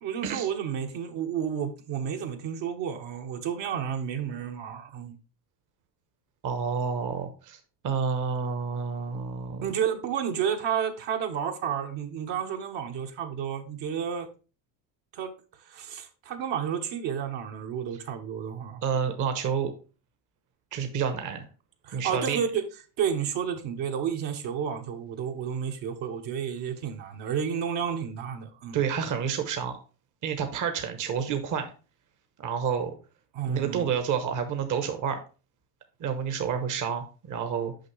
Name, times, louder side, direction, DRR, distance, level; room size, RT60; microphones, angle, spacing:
voice 1, 0.0-5.2 9.6-14.3 15.1-15.3 15.6-19.1 21.8-22.6 23.0-28.8 33.3-33.9, right 8 dB, 60° right, 1.2 m, -31 dB
voice 2, 6.4-7.6 7.8-9.7 18.8-19.7 20.7-21.4 21.9-22.4 28.7-29.8 30.2-31.7 32.4-32.9 33.5-35.2 36.0-37.7, right 7 dB, 40° right, 1.0 m, -29 dB
6.4 x 5.3 x 3.2 m
supercardioid pair, 100°, 49 cm